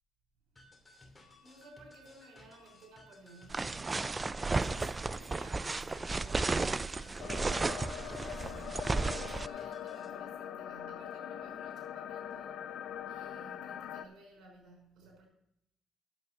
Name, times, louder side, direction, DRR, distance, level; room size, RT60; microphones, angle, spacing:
sound 1, 0.6-10.1, left 1 dB, 20° left, 2.7 m, -58 dB
voice 1, 1.0-4.1 4.5-7.8 8.0-15.3, right 2 dB, 80° right, 5.5 m, -57 dB
sound 2, 3.5-9.5, right 3 dB, 25° right, 0.4 m, -33 dB
sound 3, 7.2-14.0, left 9 dB, 75° left, 0.6 m, -42 dB
9.3 x 7.8 x 6.7 m
cardioid pair, 90°, 0 cm